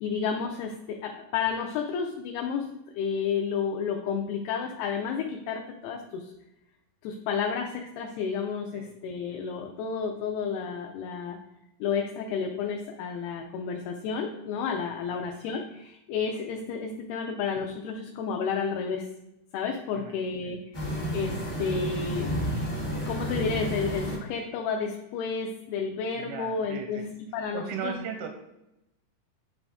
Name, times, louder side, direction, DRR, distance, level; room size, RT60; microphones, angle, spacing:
voice 1, 0.0-2.7 2.9-6.2 7.0-11.4 11.8-19.1 19.5-20.6 21.1-22.3 23.1-27.9, left 6 dB, 80° left, 2 dB, 2.4 m, -31 dB
voice 2, 14.8-15.3 19.9-20.2 20.4-20.5 26.2-27.0 27.5-28.3, right 7 dB, 85° right, 5 dB, 2.7 m, -38 dB
sound 1, 20.7-24.1, equal, 40° left, 0.8 m, -31 dB
9.9 x 3.7 x 3.5 m, 0.88 s
omnidirectional pair, 4.9 m